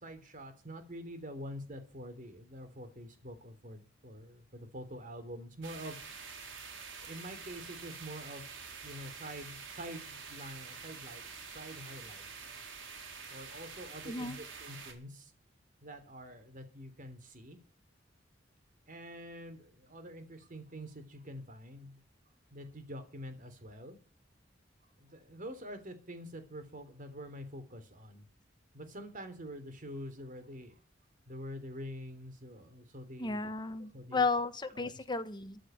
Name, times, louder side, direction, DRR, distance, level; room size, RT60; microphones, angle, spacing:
voice 1, 0.0-6.0 7.0-8.4 8.8-11.2 11.5-12.2 13.3-15.3 15.8-17.6 18.9-22.0 22.5-24.0 25.0-28.2 28.7-30.7 31.3-33.4 33.9-34.2 34.7-34.9, equal, 45° right, 9 dB, 3.5 m, -46 dB
sound 1, 5.6-14.9, right 5 dB, 85° right, 4.3 m, -47 dB
voice 2, 14.0-14.4 33.2-35.6, left 3 dB, 25° left, 9 dB, 1.5 m, -33 dB
14.5 x 6.4 x 8.9 m, 0.39 s
head